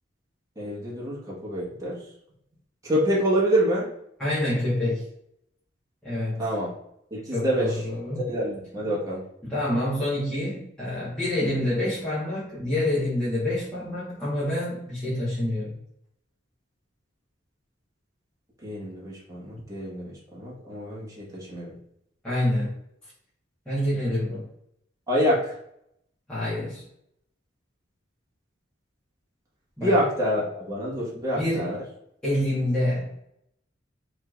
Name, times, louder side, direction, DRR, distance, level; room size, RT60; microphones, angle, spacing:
voice 1, 0.6-2.0 2.8-3.9 6.4-6.7 7.1-7.8 8.3-9.2 18.6-21.7 25.1-25.5 29.8-31.8, equal, 20° right, -7 dB, 1.5 m, -26 dB
voice 2, 4.2-5.1 6.0-6.5 7.3-8.3 9.4-15.8 22.2-22.8 23.6-24.5 26.3-26.8 29.8-30.0 31.4-31.8 32.2-33.2, left 1 dB, 5° left, -12 dB, 1.4 m, -27 dB
5.5 x 3.3 x 2.5 m, 0.75 s
head